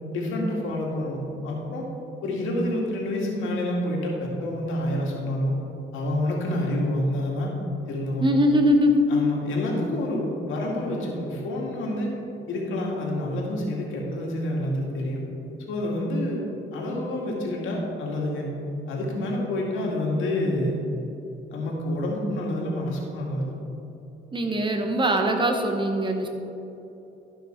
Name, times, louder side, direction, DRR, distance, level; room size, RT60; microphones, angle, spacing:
voice 1, 0.1-1.9 2.2-5.5 5.9-7.5 7.9-8.2 9.1-12.1 12.5-15.2 15.7-16.4 16.7-18.5 18.9-20.7 21.5-23.5, left 1 dB, 85° left, -2 dB, 2.1 m, -28 dB
voice 2, 8.2-9.0 24.3-26.3, equal, 25° right, 4 dB, 1.2 m, -21 dB
12.5 x 5.8 x 4.5 m, 3.0 s
cardioid pair, 90°, 20 cm